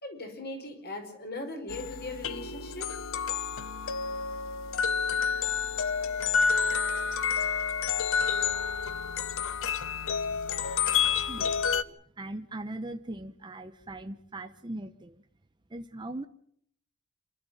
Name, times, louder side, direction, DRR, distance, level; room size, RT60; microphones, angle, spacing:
voice 1, 0.0-2.9, left 2 dB, 45° left, 4 dB, 5.3 m, -39 dB
sound 1, 1.7-11.8, left 6 dB, 65° left, 0.9 m, -29 dB
voice 2, 10.5-15.2 15.7-16.3, right 1 dB, 20° right, 7 dB, 0.8 m, -41 dB
27.5 x 12.5 x 9.0 m, 0.68 s
head